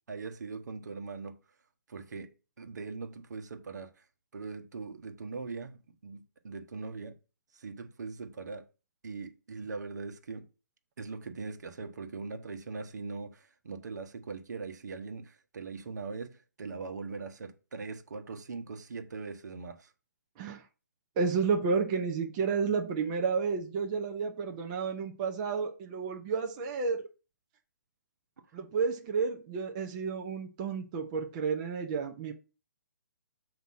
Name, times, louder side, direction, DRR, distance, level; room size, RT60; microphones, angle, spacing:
voice 1, 0.1-1.4 1.9-4.0 4.3-7.2 7.5-8.6 9.0-10.5 11.0-19.9, right 4 dB, 70° right, 1.2 m, -41 dB
voice 2, 21.2-27.1 28.5-32.3, right 5 dB, 25° right, 0.7 m, -31 dB
7.4 x 2.9 x 5.6 m
hypercardioid pair, 165°, 10 cm